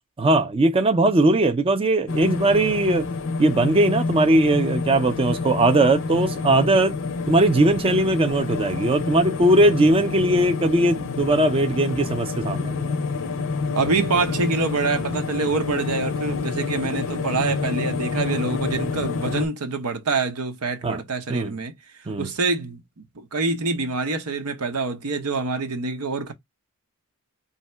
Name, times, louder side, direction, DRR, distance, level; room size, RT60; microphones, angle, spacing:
voice 1, 0.2-3.1 3.4-6.9 7.3-12.9 20.8-21.0 21.3-21.5 22.1-22.3, right 2 dB, 25° right, 0.4 m, -19 dB
sound 1, 2.1-19.5, left 4 dB, 60° left, 0.5 m, -28 dB
voice 2, 13.7-21.7 22.2-26.3, right 3 dB, 85° right, 0.9 m, -26 dB
3.2 x 2.8 x 4.4 m
head